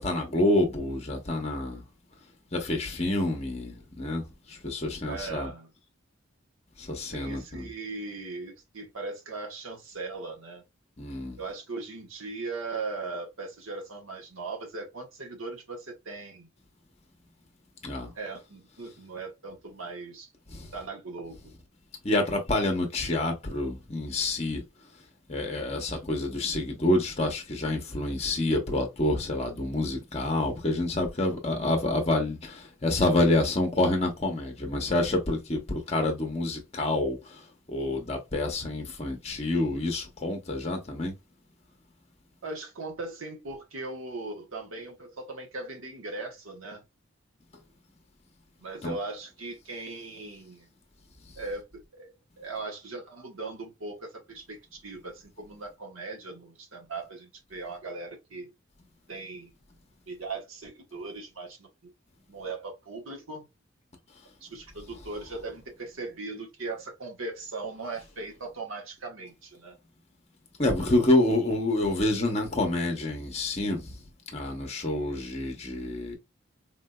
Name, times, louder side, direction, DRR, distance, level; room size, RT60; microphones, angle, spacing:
voice 1, 0.0-1.8 2.5-5.5 6.8-7.7 11.0-11.4 17.8-18.1 20.5-20.7 22.0-24.6 25.3-41.1 48.8-48.9 70.6-74.0 74.3-76.2, left 2 dB, 30° left, 0.8 m, -28 dB
voice 2, 5.0-5.7 7.1-10.6 11.4-16.5 18.1-20.3 20.7-21.4 42.4-46.8 48.6-50.7 51.4-58.5 59.1-59.5 60.1-61.9 62.3-63.5 64.4-69.8, right 3 dB, 85° right, 1.2 m, -39 dB
3.6 x 2.6 x 2.2 m
head